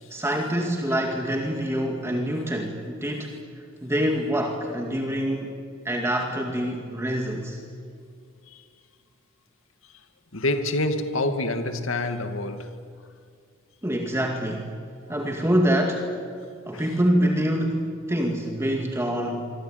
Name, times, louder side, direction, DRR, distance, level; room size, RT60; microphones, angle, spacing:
voice 1, 0.1-3.4 3.8-5.5 5.8-7.6 13.8-14.7 15.1-16.1 16.7-19.5, equal, 15° right, 2.2 m, -25 dB
voice 2, 10.3-12.8 15.1-15.2 16.7-16.9, left 2 dB, 70° left, 2.2 m, -27 dB
26.0 x 24.0 x 9.3 m
head